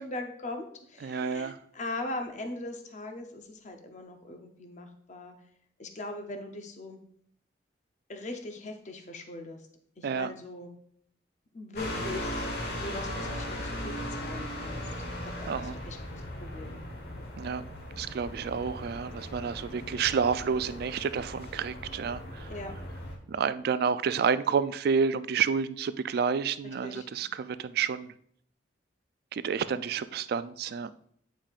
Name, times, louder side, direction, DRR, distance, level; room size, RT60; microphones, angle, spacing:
voice 1, 0.0-5.3 5.8-7.0 8.1-9.6 10.0-10.7 11.5-14.8 15.2-16.8 22.5-22.7 26.6-27.1, left 2 dB, 40° left, 5 dB, 0.7 m, -40 dB
voice 2, 1.0-1.6 10.0-10.3 15.5-15.7 17.4-17.6 18.0-22.5 23.3-28.1 29.3-30.9, right 6 dB, 55° right, 14 dB, 0.3 m, -29 dB
sound 1, 11.7-23.2, left 1 dB, 55° left, 1.3 m, -38 dB
8.9 x 5.0 x 2.4 m, 0.66 s
head